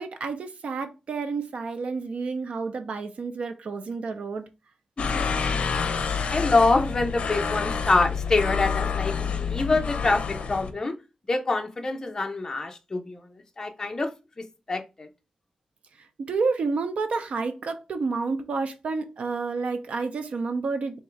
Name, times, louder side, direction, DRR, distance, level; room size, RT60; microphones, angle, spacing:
voice 1, 0.0-4.4 16.2-21.0, right 4 dB, 85° right, 0.7 m, -30 dB
sound 1, 5.0-10.7, left 6 dB, 75° left, 0.6 m, -28 dB
voice 2, 5.0-5.4 6.3-11.0 11.3-13.2 13.6-14.1 14.4-15.1, left 3 dB, 30° left, 0.7 m, -25 dB
3.6 x 3.0 x 4.5 m
wide cardioid pair, 180°, 2 cm